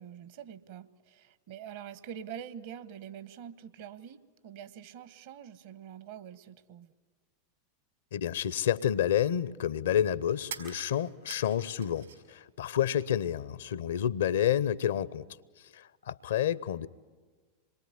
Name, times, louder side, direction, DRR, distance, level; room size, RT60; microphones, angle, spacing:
voice 1, 0.0-6.9, right 9 dB, 60° right, 1.2 m, -45 dB
voice 2, 8.1-15.3 15.7-16.9, left 10 dB, 70° left, 0.7 m, -29 dB
sound 1, 8.2-8.3 10.4-12.4 12.7-13.5, right 7 dB, 80° right, 4.5 m, -46 dB
26.5 x 22.0 x 9.9 m
figure-of-eight pair, 90°, 0 cm